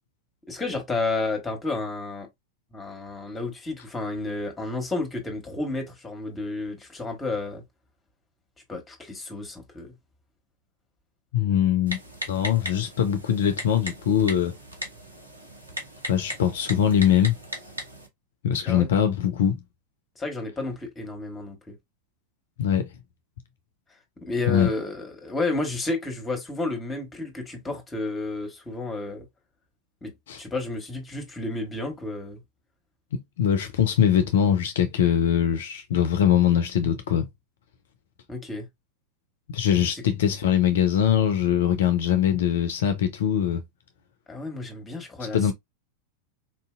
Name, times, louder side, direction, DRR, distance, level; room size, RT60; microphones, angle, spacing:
voice 1, 0.5-2.3 2.7-7.6 8.7-9.9 18.6-18.9 20.2-21.7 24.2-29.3 30.0-30.1 30.4-32.4 38.3-38.7 39.9-40.0 44.3-45.5, left 3 dB, 15° left, 1.4 m, -31 dB
voice 2, 11.3-12.0 12.3-14.6 16.1-17.3 18.4-19.6 22.6-22.9 24.5-24.7 30.3-30.4 33.1-37.3 39.5-43.6 45.3-45.5, left 9 dB, 60° left, 0.5 m, -22 dB
Typing, 11.9-18.1, equal, 80° right, 1.0 m, -37 dB
4.2 x 2.7 x 2.3 m
figure-of-eight pair, 90°, 0 cm